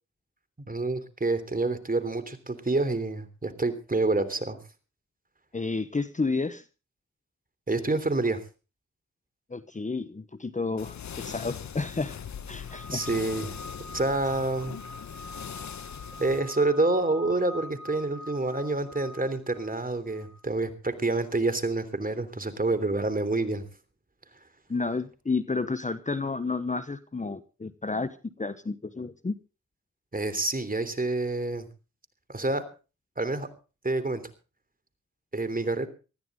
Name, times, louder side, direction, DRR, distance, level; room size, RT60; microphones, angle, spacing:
voice 1, 0.7-4.6 7.7-8.4 12.9-13.5 13.9-14.8 16.2-23.6 30.1-31.6 32.3-32.6 33.2-33.5 33.8-34.2 35.3-35.9, right 2 dB, 30° right, 11 dB, 3.3 m, -27 dB
voice 2, 5.5-6.6 9.5-12.2 12.5-13.0 24.7-29.3, left 3 dB, 25° left, 13 dB, 1.0 m, -31 dB
sound 1, 10.8-16.4, left 8 dB, 65° left, 1.2 m, -40 dB
sound 2, 12.7-20.4, left 1 dB, ahead, 2.7 m, -45 dB
19.5 x 14.0 x 3.7 m, 0.33 s
supercardioid pair, 45°, 31 cm